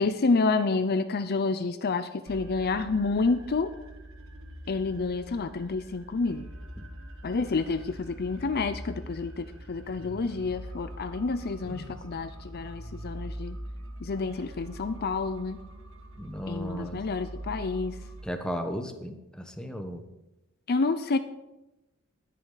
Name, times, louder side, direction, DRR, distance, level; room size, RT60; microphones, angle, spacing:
voice 1, 0.0-3.7 4.7-6.5 7.2-13.6 14.0-15.6 16.5-18.0 20.7-21.2, left 3 dB, 45° left, 11 dB, 0.5 m, -29 dB
sound 1, 2.3-18.3, right 1 dB, 65° right, 1.7 m, -43 dB
voice 2, 11.6-12.3 16.2-17.0 18.2-20.0, equal, 5° left, 5 dB, 1.1 m, -36 dB
20.0 x 8.4 x 4.0 m, 0.96 s
head